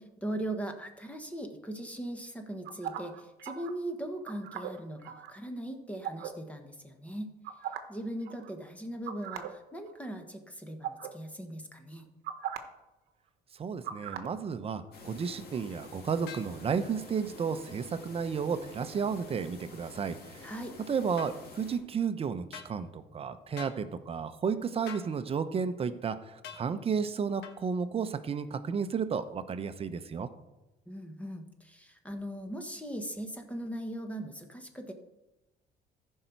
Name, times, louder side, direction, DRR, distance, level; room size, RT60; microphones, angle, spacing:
voice 1, 0.0-7.3 7.9-12.1 20.4-20.7 30.9-34.9, right 1 dB, 10° left, 5 dB, 1.3 m, -39 dB
sound 1, 2.6-3.7 4.2-5.3 6.0-6.3 7.4-8.0 8.2-8.5 9.1-9.5 9.9-10.1 10.8-11.1 12.2-12.6 13.8-14.3, right 10 dB, 75° right, 1.0 m, -38 dB
voice 2, 13.6-20.5 20.9-30.3, right 6 dB, 35° right, 11 dB, 0.8 m, -33 dB
sound 2, 14.9-21.8, left 3 dB, 65° left, 2.0 m, -49 dB
sound 3, 16.3-16.5 21.2-21.3 22.5-22.7 23.6-23.8 24.9-25.1 26.4-26.7 27.4-27.6, left 8 dB, 90° left, 1.3 m, -44 dB
14.0 x 5.6 x 4.6 m, 1.0 s
cardioid pair, 110°, 17 cm